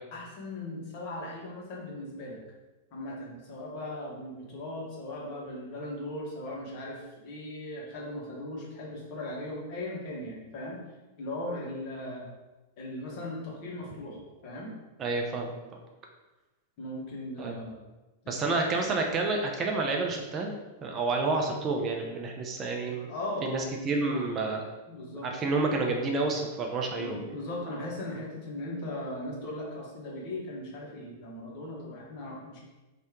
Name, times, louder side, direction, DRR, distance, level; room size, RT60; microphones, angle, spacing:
voice 1, 0.1-2.4 2.9-10.8 11.2-12.3 12.8-14.2 14.4-14.7 16.8-17.7 18.2-18.6 23.1-23.7 24.1-24.3 24.9-25.3 27.0-32.6, left 1 dB, 50° left, -3 dB, 1.2 m, -38 dB
voice 2, 15.0-15.5 17.4-17.5 18.3-20.5 20.8-23.1 23.4-24.6 25.2-27.2, right 3 dB, 30° right, 2 dB, 0.6 m, -29 dB
3.1 x 2.8 x 3.6 m, 1.1 s
figure-of-eight pair, 95°, 0 cm